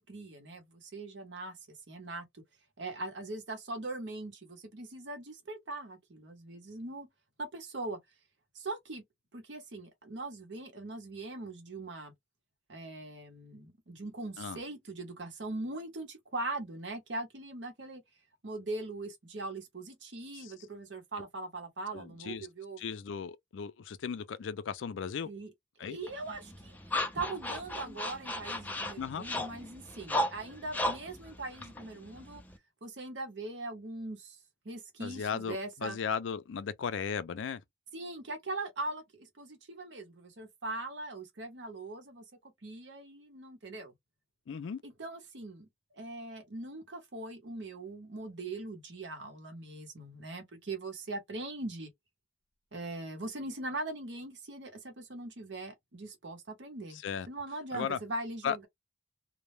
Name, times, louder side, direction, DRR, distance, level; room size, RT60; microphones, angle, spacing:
voice 1, 0.0-2.2 2.8-7.1 7.4-8.0 8.5-9.0 9.3-12.1 12.7-18.0 18.4-22.8 25.2-25.5 25.9-26.8 27.1-32.4 32.8-34.4 34.6-36.0 37.9-43.9 44.8-51.9 52.7-57.0 57.3-58.7, right 2 dB, 75° right, 0.9 m, -41 dB
voice 2, 21.9-22.5 22.8-25.3 25.8-26.0 29.0-29.2 35.0-37.6 44.5-44.8 56.9-57.3 57.7-58.0 58.4-58.7, left 6 dB, 85° left, 0.4 m, -36 dB
sound 1, 26.1-32.6, left 1 dB, 10° left, 0.4 m, -36 dB
2.2 x 2.1 x 3.0 m
head